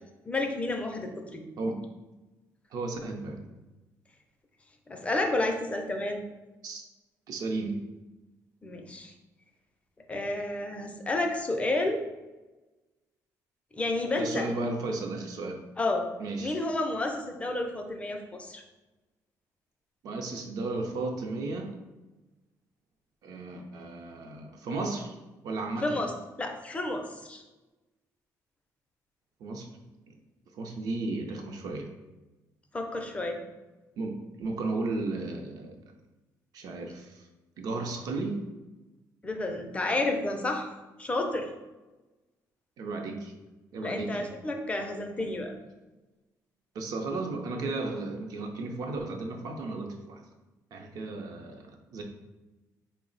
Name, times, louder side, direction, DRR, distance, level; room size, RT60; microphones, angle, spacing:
voice 1, 0.3-1.4 4.9-6.2 8.6-9.1 10.1-12.0 13.7-14.5 15.8-16.1 16.4-18.6 25.8-26.1 26.4-27.4 32.7-33.4 39.2-40.7 41.0-41.5 43.8-45.5, left 2 dB, 20° left, 4 dB, 0.4 m, -30 dB
voice 2, 2.7-3.5 6.6-6.8 7.3-7.8 14.2-15.6 16.2-16.6 20.0-21.7 23.2-25.2 25.4-26.0 29.4-29.7 30.1-30.2 30.5-31.9 34.0-35.8 36.5-37.3 37.6-38.4 42.8-43.3 43.7-44.3 45.2-45.3 46.7-50.2 50.7-52.0, right 3 dB, 65° right, 3 dB, 0.5 m, -34 dB
3.9 x 2.0 x 3.8 m, 1.1 s
cardioid pair, 135°, 7 cm